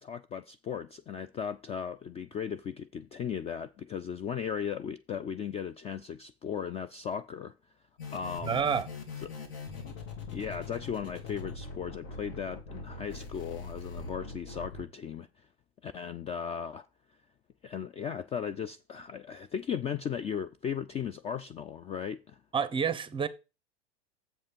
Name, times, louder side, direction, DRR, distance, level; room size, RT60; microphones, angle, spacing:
voice 1, 0.0-7.5 8.1-8.6 9.2-9.3 10.3-15.5 15.8-16.9 17.6-22.4, left 7 dB, 20° left, 0.4 m, -37 dB
sound 1, 8.0-14.8, left 4 dB, 65° left, 2.7 m, -42 dB
voice 2, 8.4-8.9 22.5-23.3, right 7 dB, 15° right, 0.8 m, -28 dB
7.5 x 5.5 x 5.2 m
hypercardioid pair, 105°, 31 cm